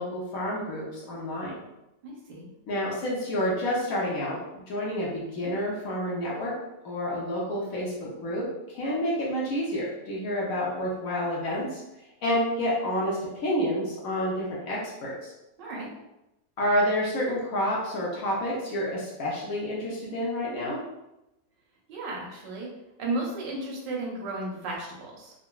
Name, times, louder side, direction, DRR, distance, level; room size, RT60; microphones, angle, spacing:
voice 1, 0.0-1.6 2.7-6.5 6.8-11.8 12.2-15.3 16.6-20.8, equal, 65° left, -4 dB, 1.0 m, -29 dB
voice 2, 2.0-2.5 15.6-15.9 21.9-22.7 23.0-25.3, right 2 dB, 90° right, -2 dB, 1.4 m, -34 dB
3.7 x 2.1 x 2.2 m, 0.93 s
omnidirectional pair, 1.9 m